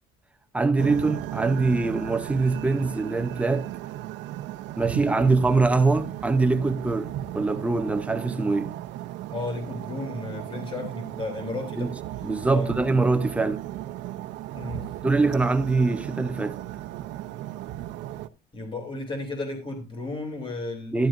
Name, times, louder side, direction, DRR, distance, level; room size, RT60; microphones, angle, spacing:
voice 1, 0.5-3.7 4.8-8.8 11.8-11.9 12.2-13.6 15.0-16.6 20.9-21.1, right 3 dB, 5° right, 0.7 m, -23 dB
sound 1, 0.8-18.3, right 13 dB, 80° right, 0.7 m, -35 dB
voice 2, 9.3-11.9 12.5-12.7 14.5-14.9 18.5-21.1, left 2 dB, 30° left, 3.2 m, -33 dB
12.0 x 11.5 x 2.5 m
cardioid pair, 150°, 19 cm